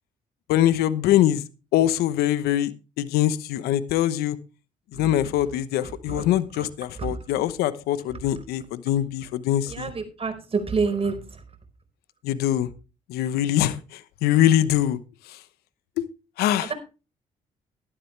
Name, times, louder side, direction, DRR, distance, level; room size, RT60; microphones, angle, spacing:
voice 1, 0.5-1.4 1.7-2.7 3.0-4.4 4.9-9.9 12.2-12.7 13.1-15.0 15.3-15.4 16.0-16.1 16.4-16.7, left 12 dB, 85° left, 15 dB, 1.0 m, -23 dB
voice 2, 9.7-11.2 16.6-16.7, right 4 dB, 35° right, 7 dB, 4.8 m, -27 dB
12.5 x 12.0 x 3.3 m, 0.31 s
supercardioid pair, 60°, 16 cm